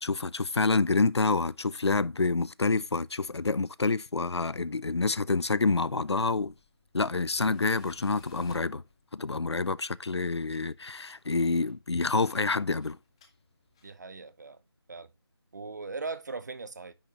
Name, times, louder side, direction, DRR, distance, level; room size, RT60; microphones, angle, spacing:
voice 1, 0.0-6.5 6.9-8.8 9.1-13.0, left 3 dB, 85° left, 0.6 m, -27 dB
Tools, 6.3-14.1, left 5 dB, 10° left, 0.8 m, -57 dB
voice 2, 13.8-14.6 14.9-15.1 15.5-16.9, right 4 dB, 45° right, 0.7 m, -39 dB
9.7 x 7.1 x 2.9 m
figure-of-eight pair, 165°, 14 cm